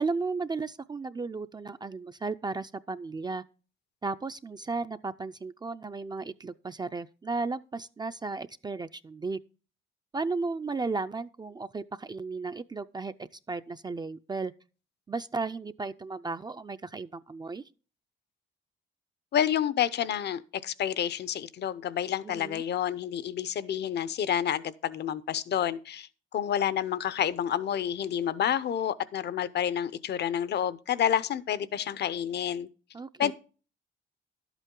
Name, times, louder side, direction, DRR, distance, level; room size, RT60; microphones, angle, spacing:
voice 1, 0.0-3.4 4.0-9.4 10.1-14.5 15.1-17.6 22.2-22.6 32.9-33.3, right 3 dB, 20° right, 0.4 m, -34 dB
voice 2, 19.3-32.7 33.2-33.3, left 9 dB, 55° left, 0.7 m, -29 dB
11.5 x 8.2 x 3.7 m
cardioid pair, 90°, 20 cm